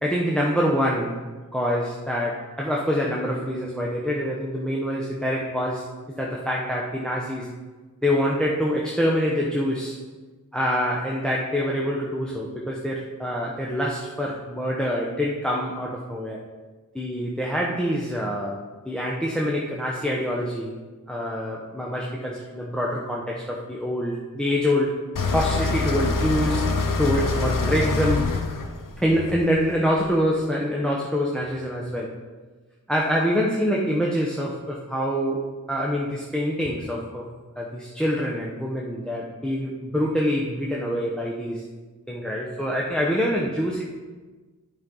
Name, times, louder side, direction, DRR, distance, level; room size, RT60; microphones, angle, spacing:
voice 1, 0.0-1.2 1.5-5.9 6.2-7.5 8.0-10.0 10.5-16.4 16.9-20.7 21.1-25.0 25.3-26.7 27.0-28.3 29.0-32.1 32.9-35.4 35.7-37.3 37.6-41.6 42.1-43.8, equal, 5° left, -3 dB, 0.9 m, -25 dB
sound 1, 25.2-30.1, left 3 dB, 90° left, 0.8 m, -25 dB
11.0 x 5.2 x 3.9 m, 1.3 s
wide cardioid pair, 90°, 31 cm